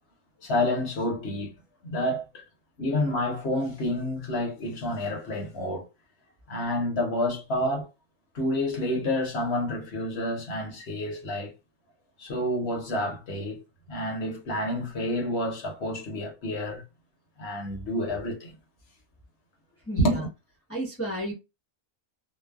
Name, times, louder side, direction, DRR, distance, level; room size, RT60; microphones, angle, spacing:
voice 1, 0.4-1.5 1.8-2.4 2.8-5.9 6.5-7.9 8.3-11.5 12.2-13.6 13.9-16.8 17.4-18.5 20.0-20.3, left 1 dB, 50° left, 1.0 m, -29 dB
voice 2, 19.9-20.2 20.7-21.3, right 1 dB, 15° left, 0.6 m, -32 dB
3.0 x 2.0 x 2.3 m
omnidirectional pair, 1.5 m